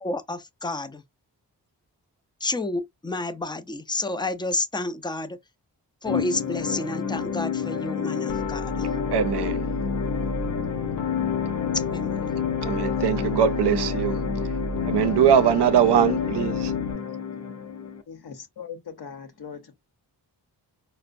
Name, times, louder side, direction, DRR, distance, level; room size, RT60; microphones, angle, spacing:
voice 1, 0.0-1.0 2.4-5.4 6.0-8.9 11.7-12.3, left 2 dB, 10° left, 0.4 m, -30 dB
sound 1, 6.1-18.0, left 7 dB, 40° left, 0.7 m, -29 dB
Piano, 8.3-16.9, left 2 dB, 90° left, 0.6 m, -33 dB
voice 2, 9.1-9.7 12.6-14.2 14.9-16.7, right 9 dB, 75° right, 0.6 m, -21 dB
voice 3, 18.1-19.7, left 7 dB, 65° left, 0.9 m, -40 dB
4.2 x 2.1 x 2.5 m
cardioid pair, 50°, 41 cm